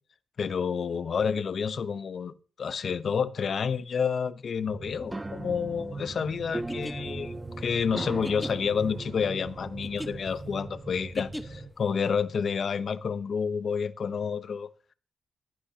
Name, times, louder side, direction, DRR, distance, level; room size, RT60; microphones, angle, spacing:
voice 1, 0.4-14.7, left 6 dB, 60° left, 0.9 m, -29 dB
sound 1, 4.7-11.7, right 3 dB, 35° right, 6.7 m, -42 dB
sound 2, 5.0-10.2, right 2 dB, 20° right, 0.5 m, -40 dB
sound 3, 6.5-11.8, equal, 5° left, 1.1 m, -41 dB
17.0 x 11.5 x 2.9 m
cardioid pair, 75°, 0 cm